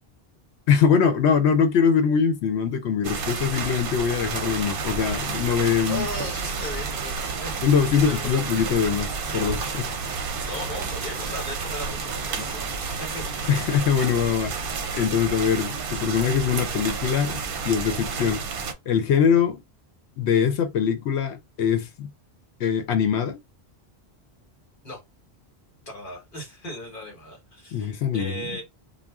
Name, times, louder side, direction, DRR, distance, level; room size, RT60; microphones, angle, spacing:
voice 1, 0.7-6.1 7.6-9.9 13.5-14.5 14.9-18.4 18.9-19.6 20.2-22.1 22.6-23.4 27.7-28.5, left 7 dB, 85° left, 0.9 m, -22 dB
sound 1, 3.0-18.7, right 5 dB, 60° right, 0.7 m, -31 dB
sound 2, 4.3-13.8, right 1 dB, 25° right, 0.5 m, -41 dB
voice 2, 5.8-7.6 8.0-8.5 10.4-12.7 13.0-13.5 24.8-25.0 25.9-28.6, left 1 dB, 50° left, 1.3 m, -36 dB
2.5 x 2.1 x 3.4 m
omnidirectional pair, 1.1 m